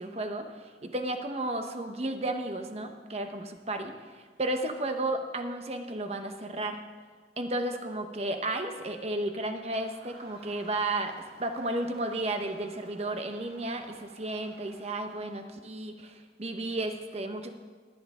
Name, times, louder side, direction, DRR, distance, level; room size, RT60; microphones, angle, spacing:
voice 1, 0.0-6.8 7.4-11.1 11.4-17.5, right 2 dB, 35° right, 6 dB, 0.9 m, -33 dB
Crowd, 9.0-15.8, right 2 dB, 60° right, 1.8 m, -55 dB
19.0 x 9.8 x 3.7 m, 1.5 s
head